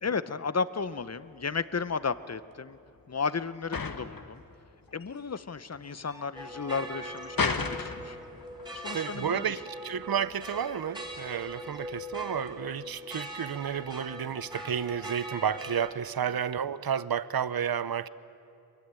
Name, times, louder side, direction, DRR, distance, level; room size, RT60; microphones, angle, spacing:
voice 1, 0.0-2.8 3.1-4.4 4.9-8.2 8.7-9.4, left 5 dB, 40° left, 14 dB, 0.8 m, -33 dB
sound 1, 0.9-12.7, left 4 dB, 60° left, 1.4 m, -38 dB
sound 2, 6.3-15.9, right 1 dB, 10° right, 3.4 m, -41 dB
voice 2, 8.9-18.1, right 8 dB, 70° right, 16 dB, 0.7 m, -31 dB
23.5 x 23.0 x 9.1 m, 2.6 s
wide cardioid pair, 60°, 38 cm